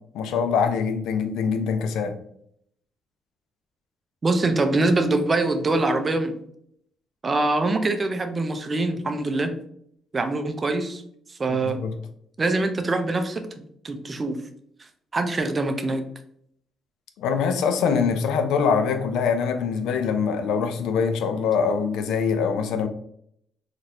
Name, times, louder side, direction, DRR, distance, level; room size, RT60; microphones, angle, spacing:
voice 1, 0.1-2.1 11.5-11.9 17.2-22.9, left 6 dB, 90° left, 0.5 m, -24 dB
voice 2, 4.2-6.3 7.2-9.5 10.1-11.0 11.3-11.8 12.4-13.5 13.8-14.4 15.1-16.0, right 2 dB, 30° right, 0.6 m, -24 dB
3.9 x 3.1 x 2.8 m
cardioid pair, 90°, 0 cm